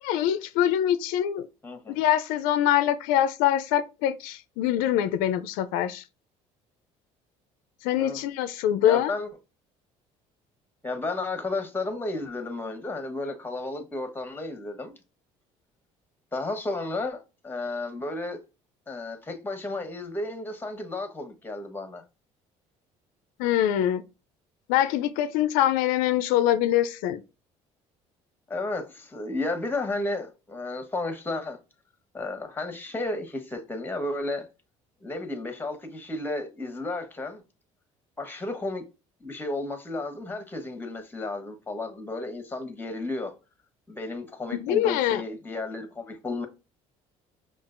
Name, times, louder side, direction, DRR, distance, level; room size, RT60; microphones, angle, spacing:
voice 1, 0.0-1.5 1.9-6.0 7.8-9.1 23.4-24.0 24.7-27.2 44.6-45.2, left 11 dB, 85° left, 0.4 m, -24 dB
voice 2, 1.6-2.0 8.0-8.2 8.8-9.3 10.8-15.0 16.3-18.4 18.9-22.0 28.5-31.6 32.1-34.4 35.0-37.4 38.2-38.8 39.2-43.3 43.9-46.5, left 2 dB, 15° left, 1.1 m, -33 dB
5.4 x 2.4 x 2.5 m
supercardioid pair, 95°, 14 cm